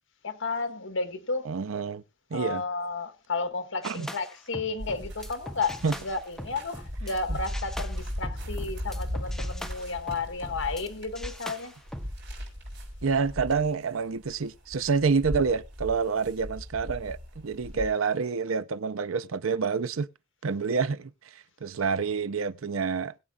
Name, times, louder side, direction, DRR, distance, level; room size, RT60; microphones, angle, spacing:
voice 1, 0.2-1.5 2.3-11.7 17.7-17.8, left 4 dB, 65° left, 1.6 m, -32 dB
voice 2, 1.5-2.0 2.3-2.6 3.8-4.1 5.8-5.9 7.3-7.4 13.0-20.1 20.4-21.1 21.6-23.1, right 5 dB, 90° right, 0.6 m, -28 dB
sound 1, 3.8-7.2 7.5-10.9 11.1-12.1, equal, ahead, 0.9 m, -42 dB
sound 2, 4.8-17.9, equal, 60° right, 5.5 m, -37 dB
21.0 x 8.4 x 2.4 m
head